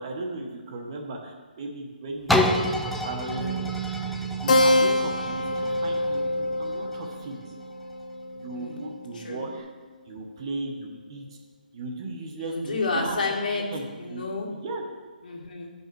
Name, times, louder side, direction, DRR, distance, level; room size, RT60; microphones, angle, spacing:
voice 1, 0.0-3.5 4.4-6.2 6.6-7.4 8.4-9.7 10.1-11.2 11.7-13.2 13.7-14.2 14.5-14.8, right 2 dB, 35° right, 1 dB, 1.2 m, -36 dB
sound 1, 2.3-8.0 8.6-8.7, left 1 dB, ahead, 0.3 m, -30 dB
Bass guitar, 3.4-9.6, right 7 dB, 70° right, 0.9 m, -38 dB
Keyboard (musical), 4.5-9.4, left 2 dB, 50° left, 0.8 m, -26 dB
voice 2, 8.5-8.9 9.1-9.5 12.4-14.5 15.2-15.7, left 3 dB, 70° left, -2 dB, 2.0 m, -31 dB
10.0 x 5.5 x 4.7 m, 1.4 s
hypercardioid pair, 165°, 5 cm